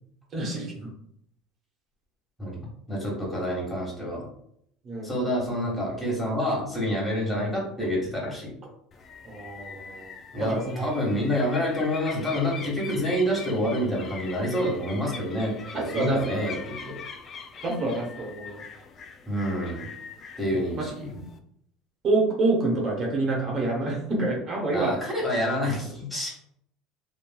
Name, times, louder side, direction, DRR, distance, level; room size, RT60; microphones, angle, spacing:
voice 1, 0.3-0.8 4.8-5.1 9.2-10.1 10.4-10.8 15.7-16.2 17.6-18.6 20.7-20.8 22.0-24.9, right 2 dB, 40° right, -2 dB, 0.9 m, -27 dB
voice 2, 2.4-4.3 5.0-8.5 10.3-17.0 19.3-19.9 20.4-21.1 24.7-26.3, equal, 10° left, -3 dB, 1.3 m, -28 dB
sound 1, 8.9-21.4, left 5 dB, 40° left, 0.3 m, -42 dB
3.0 x 2.5 x 2.2 m, 0.70 s
supercardioid pair, 100°, 0 cm